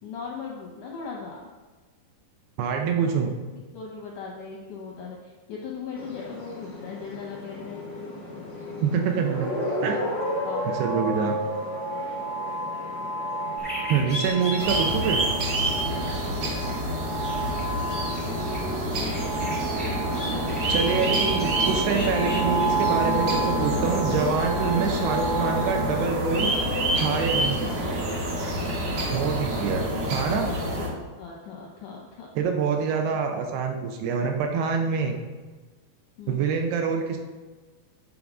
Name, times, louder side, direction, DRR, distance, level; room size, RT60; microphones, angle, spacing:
voice 1, 0.0-1.5 3.7-7.8 10.4-11.0 16.2-16.5 28.9-29.2 30.8-32.3 36.2-36.5, left 5 dB, 75° left, -2 dB, 1.8 m, -39 dB
voice 2, 2.6-3.3 8.8-9.5 9.8-10.0 10.7-11.4 13.9-15.3 20.7-26.5 26.9-27.7 29.1-29.8 30.1-30.5 32.4-35.2 36.3-37.2, right 6 dB, 75° right, 3 dB, 2.6 m, -26 dB
sound 1, 5.9-25.9, right 2 dB, 35° left, 0.7 m, -32 dB
sound 2, 13.6-26.9, left 2 dB, 5° left, 0.8 m, -40 dB
sound 3, 14.6-30.9, right 1 dB, 60° right, 2.1 m, -27 dB
9.5 x 3.8 x 6.0 m, 1.3 s
omnidirectional pair, 4.9 m